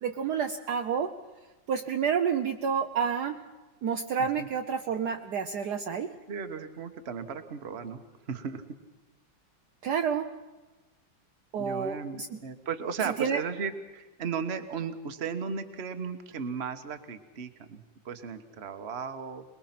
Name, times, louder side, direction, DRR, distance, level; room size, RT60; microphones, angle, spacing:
voice 1, 0.0-1.2 1.7-3.4 3.8-6.1 9.8-10.4 11.5-12.4 13.0-13.4, right 7 dB, 65° right, 6 dB, 1.3 m, -29 dB
voice 2, 6.3-8.0 8.3-8.6 11.6-19.4, right 6 dB, 40° right, 8 dB, 1.3 m, -36 dB
22.0 x 21.5 x 5.9 m, 1.2 s
omnidirectional pair, 2.1 m